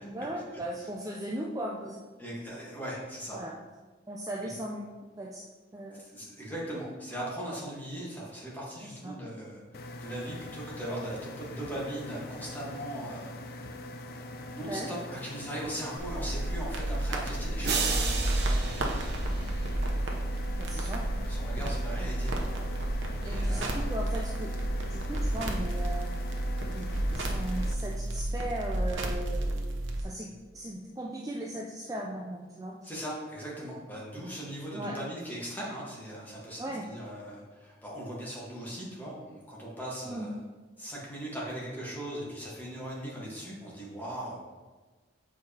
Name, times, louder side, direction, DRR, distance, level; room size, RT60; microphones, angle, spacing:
voice 1, 0.1-2.0 3.3-3.6 4.1-4.9 5.2-5.4 5.7-6.0 8.8-9.1 14.6-14.9 20.6-21.0 22.0-22.1 23.2-24.5 24.9-26.1 26.7-32.8 34.7-35.0 36.6-36.9 40.0-40.3, right 1 dB, 20° right, -1 dB, 0.4 m, -38 dB
voice 2, 2.2-3.4 4.4-4.5 6.0-13.5 14.5-19.4 20.8-20.9 21.3-22.3 22.7-23.9 32.8-40.4 40.8-44.4, right 1 dB, 10° left, -5 dB, 1.4 m, -39 dB
sound 1, 9.7-27.7, left 1 dB, 50° left, 0.4 m, -43 dB
sound 2, 16.0-30.0, right 1 dB, 90° right, 0.9 m, -31 dB
sound 3, 17.6-20.0, right 5 dB, 60° right, 0.7 m, -33 dB
7.5 x 4.8 x 2.9 m, 1.3 s
head